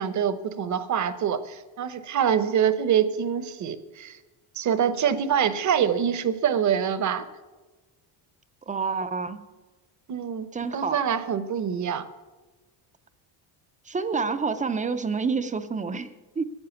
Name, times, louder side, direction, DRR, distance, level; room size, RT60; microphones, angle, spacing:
voice 1, 0.0-4.2 4.6-7.3 10.1-10.5 10.7-12.1, right 8 dB, 40° right, 13 dB, 0.9 m, -25 dB
voice 2, 8.7-9.4 10.5-11.0 13.9-16.4, right 4 dB, 15° right, 11 dB, 0.6 m, -28 dB
14.5 x 9.5 x 7.1 m, 1.2 s
cardioid pair, 155°, 45 cm